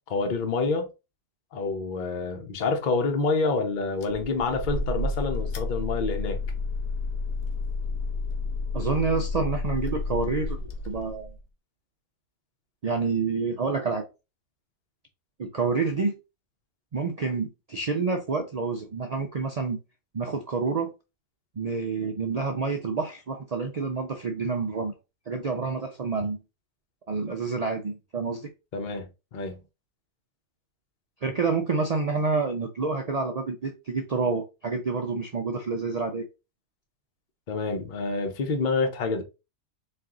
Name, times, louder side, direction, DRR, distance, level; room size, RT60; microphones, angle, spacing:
voice 1, 0.1-0.9 1.5-6.4 28.7-29.1 29.3-29.6 37.5-39.2, left 4 dB, 45° left, 0.8 m, -27 dB
sound 1, 4.0-11.4, left 3 dB, 85° left, 1.2 m, -31 dB
voice 2, 8.7-10.6 10.9-11.3 12.8-14.1 15.4-16.1 16.9-19.8 20.1-20.9 21.6-24.9 25.3-26.4 27.1-28.5 31.2-36.3, right 4 dB, 75° right, 0.3 m, -28 dB
4.3 x 2.4 x 3.7 m
omnidirectional pair, 1.4 m